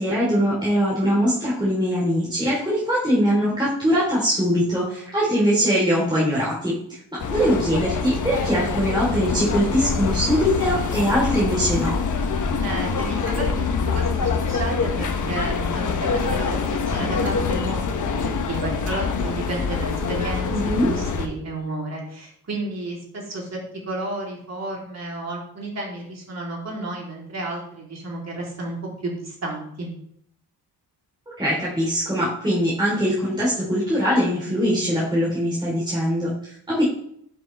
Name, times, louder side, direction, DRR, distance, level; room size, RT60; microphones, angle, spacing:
voice 1, 0.0-7.0 7.3-11.9 20.5-20.9 31.4-36.8, equal, 10° right, -8 dB, 4.2 m, -22 dB
sound 1, 7.2-21.3, left 5 dB, 50° left, 1.2 m, -25 dB
voice 2, 12.6-23.6 23.9-28.8 29.0-29.9, right 2 dB, 45° right, -3 dB, 3.9 m, -32 dB
12.0 x 7.1 x 3.6 m, 0.68 s
cardioid pair, 120°, 38 cm